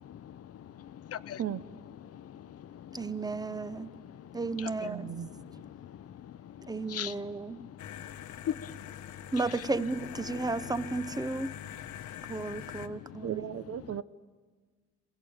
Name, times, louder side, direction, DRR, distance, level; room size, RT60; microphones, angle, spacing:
voice 1, 0.2-1.4 2.1-5.4 5.8-7.8 8.4-8.8 9.5-9.6 11.8-12.1 12.3-13.2, left 10 dB, 50° left, 0.6 m, -43 dB
voice 2, 2.9-3.9 4.3-5.1 6.7-7.6 9.3-11.5 12.3-13.4, right 3 dB, 15° right, 0.7 m, -33 dB
voice 3, 4.8-5.3 13.2-14.0, right 10 dB, 55° right, 0.9 m, -35 dB
sound 1, 7.8-12.9, left 10 dB, 75° left, 1.0 m, -44 dB
22.0 x 16.5 x 8.8 m
cardioid pair, 90°, 30 cm